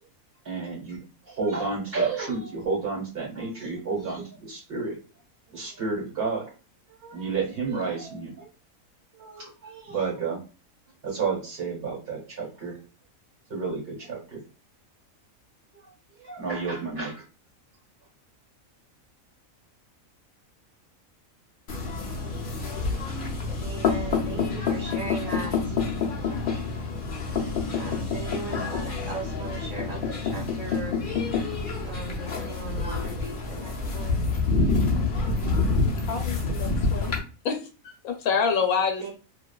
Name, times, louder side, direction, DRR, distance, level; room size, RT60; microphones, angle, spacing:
voice 1, 0.4-1.0 1.2-5.0 5.5-6.5 6.9-8.5 9.2-10.4 11.0-12.8 13.5-14.4 15.7-15.9 16.2-17.2, right 4 dB, 45° right, -3 dB, 1.4 m, -31 dB
sound 1, 21.7-37.2, left 4 dB, 50° left, 0.6 m, -27 dB
voice 2, 23.6-25.8 27.7-31.0 31.8-34.2 39.0-39.1, right 3 dB, 65° right, -3 dB, 1.4 m, -38 dB
voice 3, 36.1-37.1 37.4-39.1, left 5 dB, 85° left, 5 dB, 1.1 m, -27 dB
2.6 x 2.5 x 2.2 m, 0.34 s
omnidirectional pair, 1.4 m